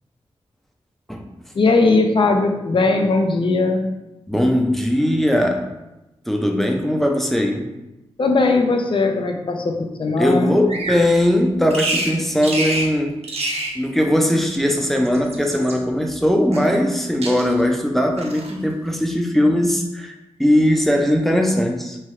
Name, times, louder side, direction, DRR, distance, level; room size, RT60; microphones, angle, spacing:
voice 1, 1.6-3.9 8.2-10.5, left 3 dB, 50° left, 4 dB, 0.5 m, -18 dB
voice 2, 4.3-5.7 6.3-7.7 10.2-13.1 13.8-22.0, equal, ahead, 3 dB, 0.5 m, -19 dB
Bird vocalization bird call bird song, 10.7-11.0 11.7-12.1 12.4-12.9 13.2-13.8 14.8-15.8 16.5-17.0 17.2-17.7 18.2-18.6, right 2 dB, 70° right, 0.6 m, -27 dB
3.0 x 2.3 x 3.0 m, 0.97 s
cardioid pair, 50°, 11 cm